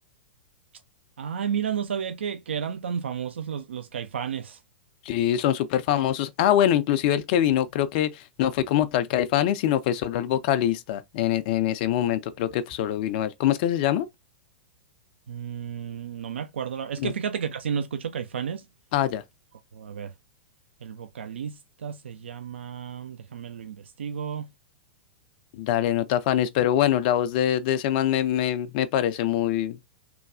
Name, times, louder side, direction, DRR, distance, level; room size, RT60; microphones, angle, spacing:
voice 1, 1.2-4.6 15.3-18.6 19.7-20.1 20.8-24.5, right 7 dB, 70° right, 0.4 m, -32 dB
voice 2, 5.0-14.1 17.0-17.1 18.9-19.2 25.5-29.8, left 11 dB, 45° left, 0.4 m, -24 dB
3.1 x 2.2 x 2.5 m
figure-of-eight pair, 100°, 6 cm